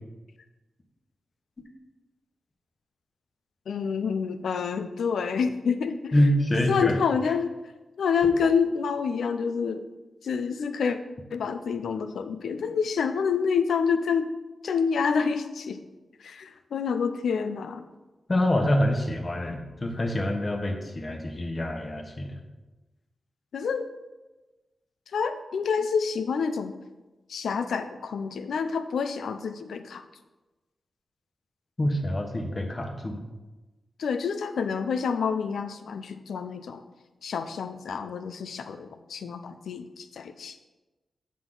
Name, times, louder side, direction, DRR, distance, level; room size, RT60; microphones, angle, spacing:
voice 1, 3.7-6.1 6.7-7.5 8.0-9.9 10.2-11.0 11.3-14.3 14.6-15.8 16.2-17.9 23.5-23.9 25.1-26.7 27.3-30.0 34.0-36.8 37.2-40.6, left 6 dB, 90° left, 9 dB, 0.5 m, -28 dB
voice 2, 6.1-6.9 18.3-22.4 31.8-33.2, left 1 dB, 35° left, 2 dB, 1.3 m, -26 dB
7.4 x 6.2 x 3.9 m, 1.1 s
cardioid pair, 65°, 0 cm